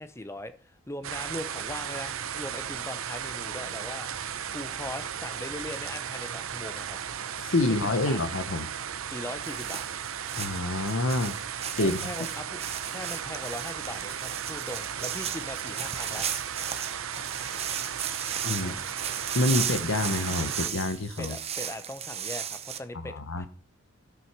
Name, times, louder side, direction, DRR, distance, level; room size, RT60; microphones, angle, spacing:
voice 1, 0.0-4.1 4.5-7.0 7.6-8.2 9.1-9.8 11.8-12.6 12.9-16.3 18.6-18.9 19.5-20.1 21.2-23.5, left 1 dB, 15° left, 0.7 m, -40 dB
sound 1, 1.0-20.7, right 8 dB, 80° right, 0.7 m, -36 dB
voice 2, 7.4-8.7 10.4-11.4 11.8-12.1 18.4-18.7 19.3-21.4 23.0-23.5, left 2 dB, 70° left, 1.0 m, -27 dB
sound 2, 9.4-22.8, right 8 dB, 30° right, 0.8 m, -35 dB
13.0 x 6.0 x 6.1 m
head